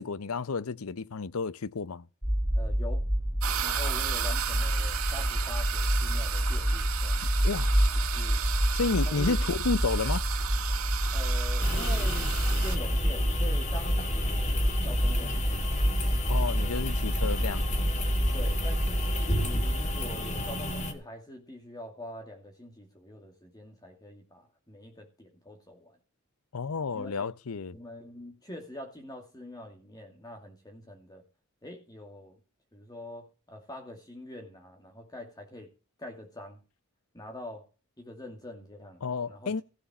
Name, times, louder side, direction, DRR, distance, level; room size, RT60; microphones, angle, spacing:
voice 1, 0.0-2.0 7.4-7.7 8.7-10.2 16.3-17.7 26.5-27.8 39.0-39.6, left 4 dB, 80° left, 0.7 m, -31 dB
sound 1, 2.2-20.0, equal, 10° right, 1.4 m, -28 dB
voice 2, 2.5-3.1 3.6-7.2 8.1-8.4 9.1-9.3 11.1-15.8 16.6-16.7 18.3-26.0 26.9-27.3 27.7-31.2 31.6-32.4 32.7-35.7 36.0-36.6 37.1-37.7 38.0-39.6, left 1 dB, 20° left, 2.5 m, -44 dB
sound 2, 3.4-12.8, right 9 dB, 80° right, 1.7 m, -34 dB
sound 3, 11.6-20.9, left 1 dB, 35° left, 2.1 m, -34 dB
15.5 x 7.1 x 6.1 m
head